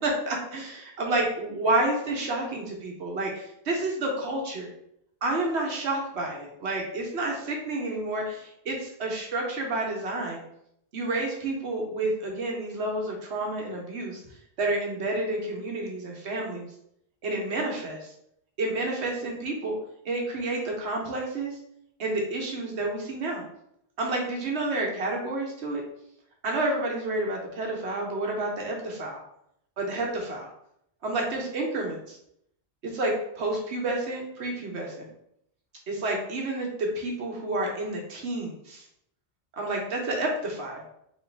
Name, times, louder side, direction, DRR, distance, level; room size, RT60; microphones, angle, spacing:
voice 1, 0.0-4.7 5.2-10.4 10.9-14.2 14.6-16.7 17.2-18.1 18.6-19.7 20.0-21.5 22.0-23.4 24.0-25.8 26.4-29.2 29.8-30.5 31.0-32.2 32.8-35.1 35.9-38.8 39.6-40.8, right 2 dB, 85° right, 0 dB, 1.2 m, -30 dB
3.2 x 3.0 x 3.2 m, 0.74 s
omnidirectional pair, 1.1 m